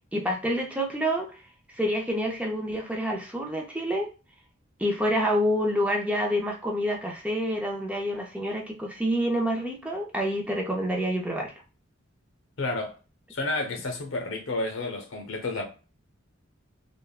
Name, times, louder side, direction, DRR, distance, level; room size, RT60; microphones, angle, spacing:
voice 1, 0.1-1.4 1.7-4.1 4.8-11.5, equal, 5° right, 0.4 m, -27 dB
voice 2, 12.6-12.9 13.3-15.6, left 2 dB, 80° left, 0.7 m, -30 dB
3.4 x 2.1 x 2.3 m
head